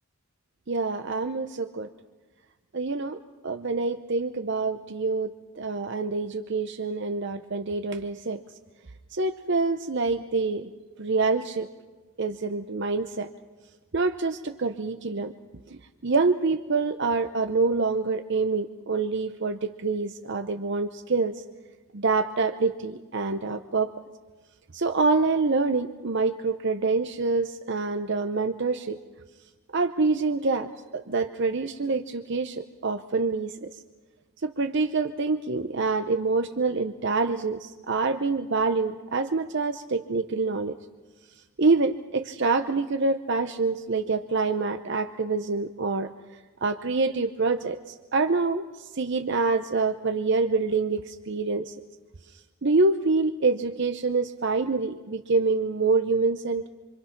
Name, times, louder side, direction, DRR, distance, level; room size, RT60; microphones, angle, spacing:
voice 1, 0.7-1.9 2.7-8.4 9.1-10.7 11.0-11.7 12.2-13.3 13.9-15.3 15.7-21.4 21.9-23.9 24.7-29.0 29.7-33.8 34.4-40.8 41.6-46.1 46.6-51.7 52.6-56.7, right 3 dB, 55° right, 8 dB, 0.7 m, -26 dB
26.5 x 25.0 x 5.9 m, 1.3 s
head